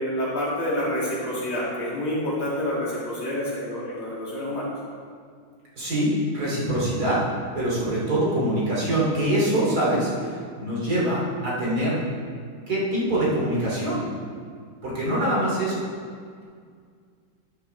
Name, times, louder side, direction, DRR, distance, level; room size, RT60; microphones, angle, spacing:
voice 1, 0.0-4.7, left 1 dB, 85° left, -7 dB, 3.6 m, -28 dB
voice 2, 5.8-7.3 7.5-12.0 12.7-14.0 14.8-15.7, right 1 dB, 50° right, -7 dB, 3.5 m, -24 dB
11.5 x 10.0 x 3.5 m, 2.1 s
omnidirectional pair, 2.2 m